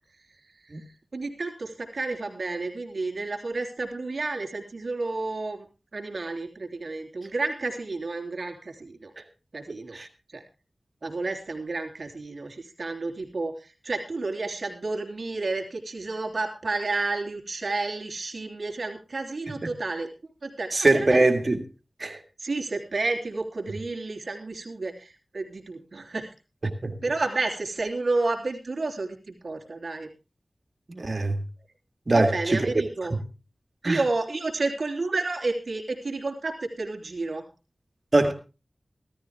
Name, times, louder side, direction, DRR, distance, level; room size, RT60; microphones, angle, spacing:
voice 1, 1.1-5.6 5.9-9.1 9.5-10.0 10.3-10.4 11.0-20.1 20.4-21.2 22.4-26.3 27.0-30.1 32.1-33.1 33.8-37.4, right 3 dB, 70° right, 3.3 m, -31 dB
voice 2, 20.7-21.6 22.0-22.2 26.8-26.9 30.9-31.4 32.1-32.7 33.8-34.0 38.1-38.3, right 2 dB, 45° right, 1.9 m, -22 dB
15.5 x 13.5 x 3.6 m
wide cardioid pair, 80°, 0 cm